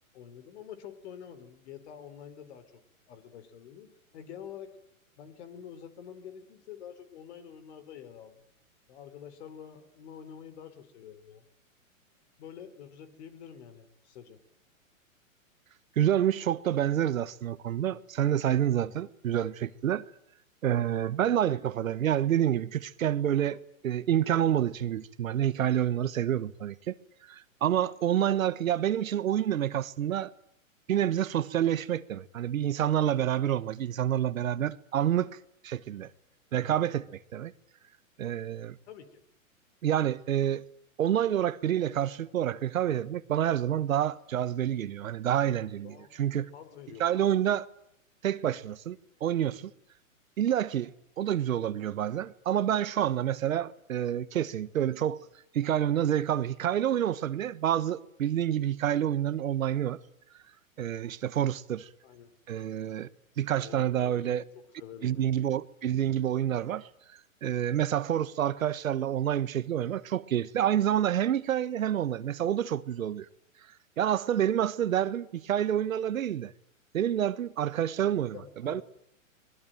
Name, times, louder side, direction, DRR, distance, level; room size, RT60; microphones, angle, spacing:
voice 1, 0.1-2.7 3.1-4.8 5.2-8.4 8.9-11.5 12.4-14.4 38.9-39.2 45.8-46.1 46.5-47.4 62.0-62.3 63.5-64.2 64.8-65.3 78.1-78.8, left 8 dB, 50° left, 4.1 m, -47 dB
voice 2, 16.0-20.0 20.6-26.9 27.3-30.3 30.9-35.4 35.6-36.1 36.5-37.5 38.2-38.8 39.8-40.6 41.0-46.5 47.0-47.7 48.2-49.7 50.4-55.2 55.5-60.0 60.8-61.9 62.5-63.1 63.4-64.4 65.0-66.9 67.4-73.3 74.0-76.5 76.9-78.4 78.6-78.8, right 10 dB, 70° right, 1.3 m, -28 dB
24.0 x 21.0 x 9.1 m
hypercardioid pair, 130°, 42 cm